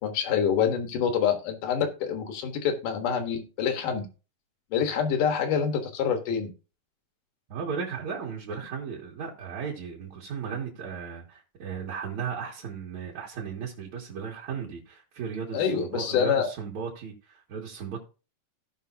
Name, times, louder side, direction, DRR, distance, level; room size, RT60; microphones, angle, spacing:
voice 1, 0.0-4.1 4.7-6.5 15.5-16.5, left 7 dB, 80° left, 3.0 m, -26 dB
voice 2, 7.5-18.0, right 6 dB, 65° right, 2.9 m, -36 dB
16.5 x 5.6 x 2.8 m
omnidirectional pair, 3.7 m